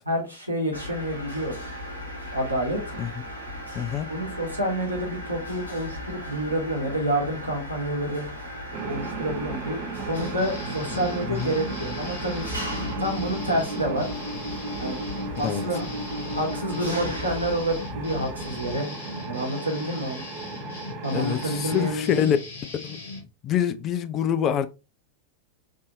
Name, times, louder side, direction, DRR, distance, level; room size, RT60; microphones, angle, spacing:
voice 1, 0.1-1.6 2.3-3.0 4.1-8.2 8.9-12.5 13.0-14.1 14.8-15.0 15.4-15.8 16.1-18.9 19.3-20.2 21.0-22.3, right 1 dB, 85° right, 1.1 m, -28 dB
Mechanisms, 0.7-18.8, left 1 dB, 90° left, 1.1 m, -36 dB
voice 2, 3.7-4.1 11.2-11.5 15.4-15.6 21.1-22.4 22.8-23.0 23.4-24.7, left 9 dB, 30° left, 0.3 m, -25 dB
sound 1, 8.7-22.0, right 5 dB, 40° right, 0.7 m, -36 dB
sound 2, 10.1-23.3, left 3 dB, 60° left, 1.0 m, -39 dB
3.5 x 2.6 x 2.6 m
figure-of-eight pair, 90°, 0 cm